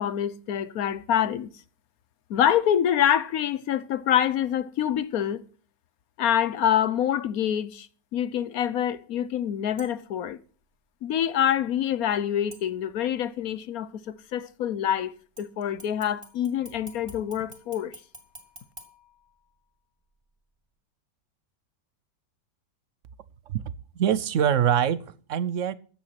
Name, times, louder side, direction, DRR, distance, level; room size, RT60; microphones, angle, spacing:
voice 1, 0.0-1.5 2.3-5.4 6.2-7.9 8.1-10.4 11.0-13.9 14.3-17.9, left 10 dB, 60° left, 1.1 m, -26 dB
sound 1, 9.8-10.2 12.5-13.2 15.4-19.8 20.2-20.3, right 1 dB, 15° right, 2.9 m, -50 dB
voice 2, 23.9-25.8, right 9 dB, 60° right, 0.9 m, -24 dB
15.0 x 9.3 x 5.9 m
omnidirectional pair, 1.9 m